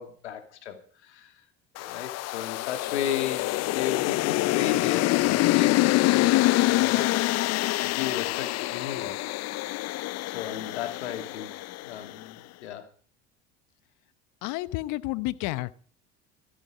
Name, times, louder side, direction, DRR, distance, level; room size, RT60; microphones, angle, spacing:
voice 1, 0.0-1.4 1.8-7.3 7.8-9.2 10.3-12.9, left 10 dB, 90° left, 6 dB, 2.7 m, -35 dB
sound 1, 1.8-12.1, left 18 dB, 50° left, 0.5 m, -25 dB
voice 2, 14.4-15.7, left 18 dB, 65° left, 16 dB, 1.0 m, -30 dB
15.0 x 12.0 x 5.0 m, 0.43 s
hypercardioid pair, 80°, 33 cm